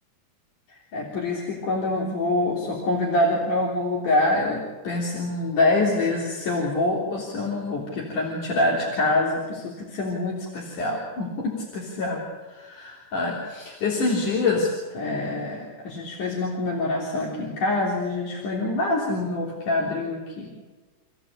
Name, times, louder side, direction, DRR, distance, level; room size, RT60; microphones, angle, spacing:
voice 1, 0.9-12.2 12.5-20.5, left 2 dB, 85° left, -3 dB, 5.1 m, -25 dB
29.0 x 16.0 x 8.6 m, 1.3 s
omnidirectional pair, 3.5 m